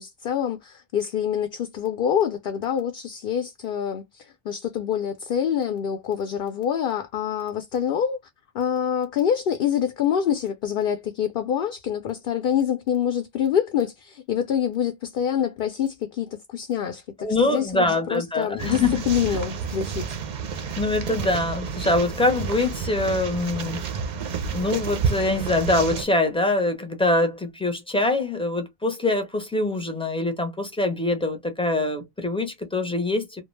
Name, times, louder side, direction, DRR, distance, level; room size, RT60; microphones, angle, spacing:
voice 1, 0.0-8.2 8.5-17.8 18.1-20.2, left 9 dB, 65° left, 0.7 m, -26 dB
voice 2, 17.2-18.9 19.3-19.4 20.8-23.8 24.5-33.4, left 2 dB, 5° left, 0.6 m, -24 dB
sound 1, 18.6-26.0, right 6 dB, 55° right, 0.6 m, -30 dB
2.3 x 2.2 x 3.1 m
omnidirectional pair, 1.1 m